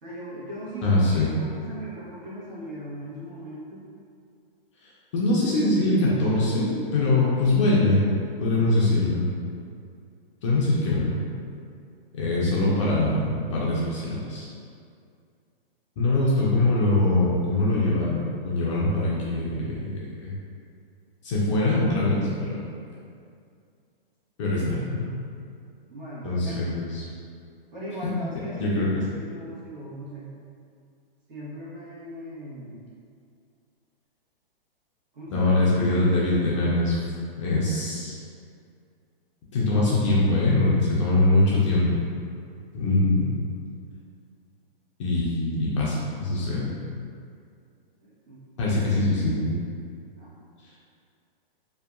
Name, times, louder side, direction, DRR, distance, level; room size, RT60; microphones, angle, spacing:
voice 1, 0.0-3.8 25.9-26.6 27.7-30.3 31.3-32.9 35.1-35.8 48.0-48.4 50.1-50.3, equal, 50° right, -8 dB, 1.1 m, -39 dB
voice 2, 0.8-1.3 5.1-8.0 8.4-9.3 10.4-11.2 12.1-14.5 16.0-20.4 21.2-22.6 24.4-25.0 26.2-27.0 28.6-28.9 35.3-37.0 37.3-38.2 39.5-42.0 42.7-43.3 45.0-46.7 48.6-49.5, left 2 dB, 35° left, -6 dB, 0.4 m, -23 dB
2.7 x 2.2 x 2.4 m, 2.3 s
hypercardioid pair, 140°, 29 cm